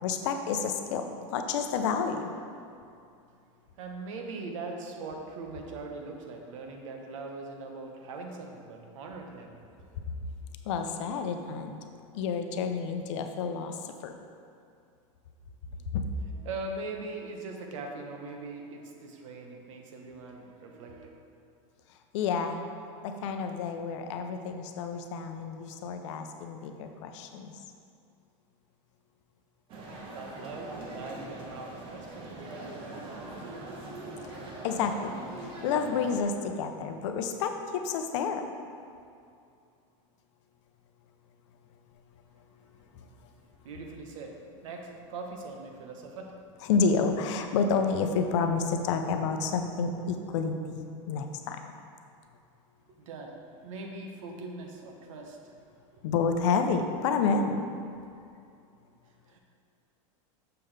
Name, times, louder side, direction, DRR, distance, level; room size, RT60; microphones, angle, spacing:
voice 1, 0.0-2.3 10.7-11.8 12.1-14.1 15.9-16.0 22.1-22.6 23.0-27.5 34.6-35.1 35.4-38.5 42.9-43.1 46.6-51.6 56.0-57.6, left 5 dB, 65° left, 6 dB, 0.6 m, -29 dB
voice 2, 3.8-9.5 16.4-21.1 30.1-33.6 43.6-44.4 44.6-46.3 53.0-53.4 53.6-55.4 55.9-56.0 59.3-59.4, right 3 dB, 80° right, 2 dB, 1.0 m, -41 dB
sound 1, 29.7-36.2, right 2 dB, 30° right, 0.9 m, -42 dB
6.8 x 5.6 x 3.3 m, 2.5 s
supercardioid pair, 160°, 16 cm